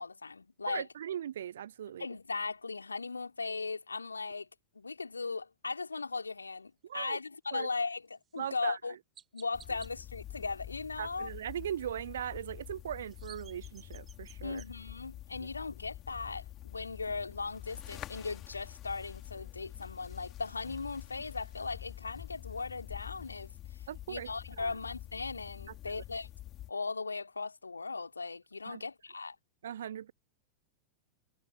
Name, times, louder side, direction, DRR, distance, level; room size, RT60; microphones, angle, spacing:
voice 1, 0.0-0.9 2.0-4.5 4.7-8.9 9.3-11.3 14.4-23.8 24.1-26.3 26.7-29.4, left 4 dB, 80° left, 3.4 m, -38 dB
voice 2, 0.7-2.1 6.8-7.2 7.5-7.7 8.4-8.8 11.0-14.6 23.9-24.3 24.6-24.7 28.7-28.8 29.6-30.1, right 10 dB, 65° right, 0.8 m, -39 dB
Chirp tweet, 8.2-8.4 9.1-9.9 12.9-14.7, right 8 dB, 25° right, 6.5 m, -55 dB
sound 1, 9.5-26.7, left 13 dB, 35° left, 3.4 m, -47 dB
figure-of-eight pair, 90°, 0 cm